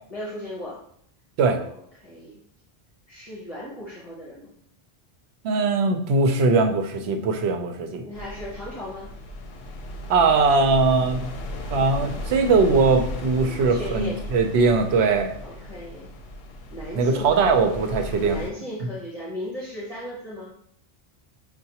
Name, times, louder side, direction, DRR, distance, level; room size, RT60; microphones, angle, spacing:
voice 1, 0.1-0.8 1.6-2.4 3.1-4.5 8.0-9.1 13.5-14.2 15.4-16.1 16.7-17.7 18.2-20.5, left 1 dB, 40° left, -6 dB, 0.8 m, -36 dB
voice 2, 5.4-8.0 10.1-11.2 11.7-15.3 16.9-18.4 18.8-18.9, right 4 dB, 80° right, 5 dB, 0.8 m, -20 dB
sound 1, 8.1-18.5, left 1 dB, 70° left, 0.8 m, -35 dB
5.5 x 2.2 x 2.7 m, 0.66 s
omnidirectional pair, 1.1 m